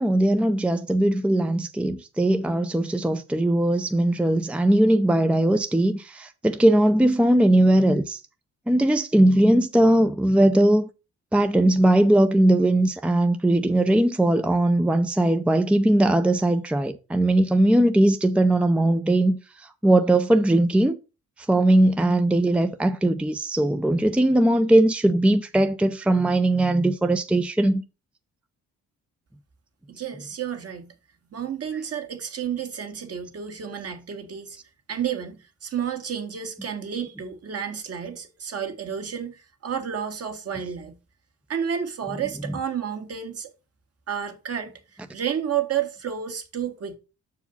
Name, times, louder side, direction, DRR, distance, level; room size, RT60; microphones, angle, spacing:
voice 1, 0.0-8.2 8.7-10.9 11.3-19.4 19.8-21.0 21.5-27.8, right 1 dB, 5° right, 0.6 m, -20 dB
voice 2, 29.9-30.9 31.3-34.6 34.9-41.0 41.5-43.5 44.1-44.7 45.1-47.0, right 8 dB, 50° right, 1.8 m, -31 dB
6.8 x 4.8 x 5.5 m
cardioid pair, 90°, 30 cm